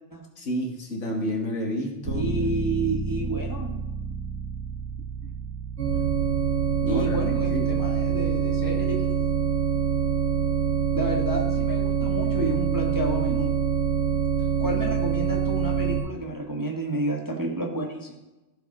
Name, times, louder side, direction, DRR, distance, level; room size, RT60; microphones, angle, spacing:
voice 1, 0.4-2.3 6.8-7.7, left 1 dB, 70° left, 1 dB, 1.8 m, -30 dB
voice 2, 2.1-3.9 5.2-5.3 6.9-9.1 10.9-13.6 14.6-18.2, right 2 dB, 15° right, 0 dB, 0.9 m, -30 dB
Bass guitar, 2.1-8.3, right 4 dB, 90° right, 1.3 m, -33 dB
sound 1, 5.8-16.0, right 7 dB, 65° right, 1.6 m, -25 dB
14.5 x 5.0 x 4.1 m, 1.1 s
omnidirectional pair, 1.3 m